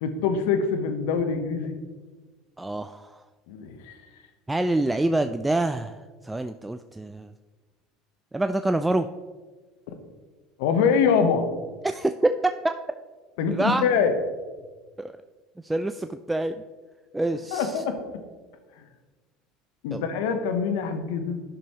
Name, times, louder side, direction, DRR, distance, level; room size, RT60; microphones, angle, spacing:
voice 1, 0.0-1.8 3.5-4.0 10.6-11.5 13.4-14.2 17.5-18.2 19.8-21.4, left 6 dB, 75° left, 7 dB, 0.8 m, -24 dB
voice 2, 2.6-3.2 4.5-7.3 8.3-9.1 11.8-12.3 12.6-12.7 13.5-13.8 15.0-15.1 15.6-16.5 17.1-17.8 19.9-20.0, right 2 dB, 10° right, 8 dB, 0.3 m, -26 dB
10.0 x 6.1 x 2.9 m, 1.3 s
hypercardioid pair, 75°, 0 cm